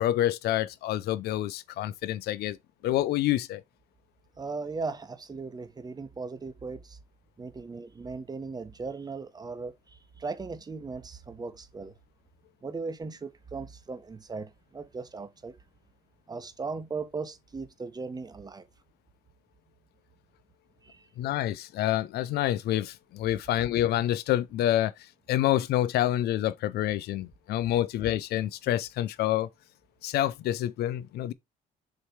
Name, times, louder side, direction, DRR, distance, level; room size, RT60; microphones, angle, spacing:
voice 1, 0.0-2.6 2.8-3.6 21.2-24.9 25.3-29.5 30.0-31.3, left 13 dB, 70° left, 0.6 m, -27 dB
voice 2, 4.4-7.0 7.4-11.9 12.6-15.5 16.3-18.6 20.8-21.0, right 4 dB, 25° right, 1.0 m, -38 dB
6.7 x 3.2 x 4.5 m
cardioid pair, 110°, 17 cm